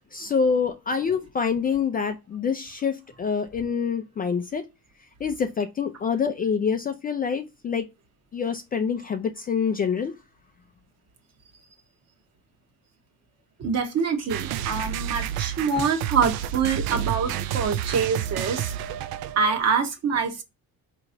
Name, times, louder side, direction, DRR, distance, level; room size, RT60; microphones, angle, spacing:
voice 1, 0.1-4.7 5.2-7.9 8.3-10.2, left 6 dB, 25° left, 0.4 m, -26 dB
voice 2, 13.6-18.8 19.4-20.4, right 5 dB, 45° right, 1.2 m, -25 dB
sound 1, 14.3-19.6, right 10 dB, 80° right, 0.5 m, -30 dB
4.7 x 3.0 x 2.6 m
cardioid pair, 145°, 36 cm